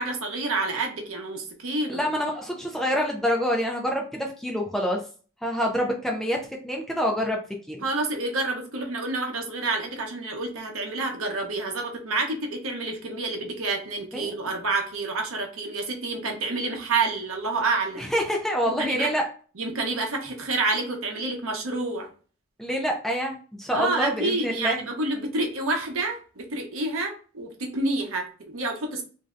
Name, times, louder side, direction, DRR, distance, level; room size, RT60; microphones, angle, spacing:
voice 1, 0.0-2.0 7.8-18.0 18.8-19.1 19.6-22.1 23.7-29.0, right 3 dB, 80° right, 2 dB, 0.8 m, -28 dB
voice 2, 1.9-5.0 5.4-7.4 7.7-7.8 14.1-14.3 18.0-19.3 22.6-24.8, equal, ahead, 0 dB, 0.4 m, -26 dB
3.1 x 2.6 x 2.4 m, 0.39 s
head